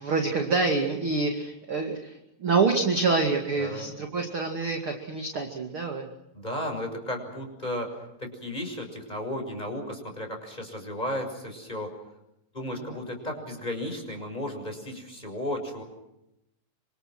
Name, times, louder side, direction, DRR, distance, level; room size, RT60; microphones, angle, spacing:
voice 1, 0.0-6.1 12.9-13.0, right 4 dB, 35° right, 3 dB, 2.5 m, -27 dB
voice 2, 3.6-3.9 6.3-11.9 12.5-15.8, left 1 dB, 10° left, 3 dB, 6.3 m, -34 dB
28.5 x 26.0 x 6.2 m, 0.86 s
omnidirectional pair, 5.1 m